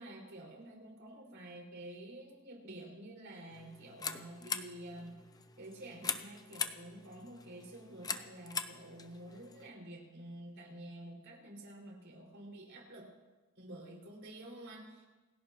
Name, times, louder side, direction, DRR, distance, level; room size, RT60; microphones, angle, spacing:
voice 1, 0.0-5.2 5.6-13.1 13.6-15.1, right 1 dB, 60° right, -2 dB, 5.6 m, -49 dB
sound 1, 3.5-9.7, left 5 dB, 20° left, 0.7 m, -42 dB
28.5 x 16.0 x 3.1 m, 1.2 s
head